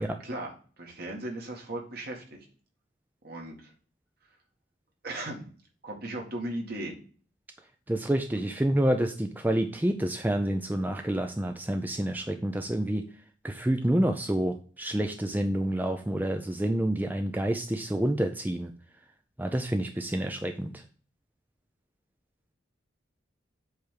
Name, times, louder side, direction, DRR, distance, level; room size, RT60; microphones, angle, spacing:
voice 1, 0.0-2.4 3.2-3.7 5.0-5.5 5.8-7.0 8.3-8.4, right 1 dB, 55° right, 0 dB, 2.0 m, -37 dB
voice 2, 7.9-13.0 13.4-18.7 19.4-20.8, right 1 dB, 10° right, 5 dB, 0.5 m, -28 dB
7.9 x 3.5 x 6.5 m, 0.43 s
head